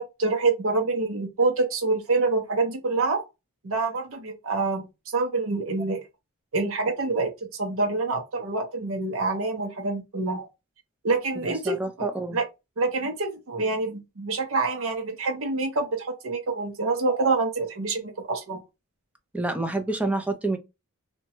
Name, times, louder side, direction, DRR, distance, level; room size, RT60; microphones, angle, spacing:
voice 1, 0.0-3.2 3.6-6.0 6.5-7.3 7.6-10.5 11.0-12.4 12.8-18.6, right 3 dB, 65° right, 0.6 m, -26 dB
voice 2, 11.5-12.4 19.3-20.6, right 2 dB, 5° right, 0.4 m, -28 dB
2.7 x 2.2 x 2.8 m
head